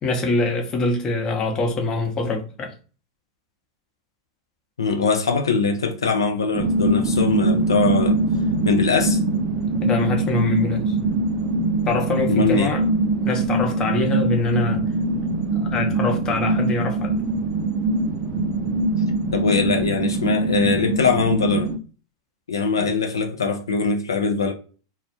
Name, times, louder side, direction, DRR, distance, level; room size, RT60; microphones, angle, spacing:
voice 1, 0.0-2.7 9.8-10.9 11.9-12.9 13.3-14.8 15.5-17.1 22.7-22.9, left 3 dB, 30° left, 0.7 m, -24 dB
voice 2, 4.8-8.2 8.6-9.2 12.3-12.7 19.3-21.7 22.5-24.5, left 4 dB, 85° left, 0.4 m, -22 dB
sound 1, 6.5-21.8, right 2 dB, 35° right, 0.4 m, -22 dB
2.2 x 2.1 x 2.7 m
hypercardioid pair, 100°, 2 cm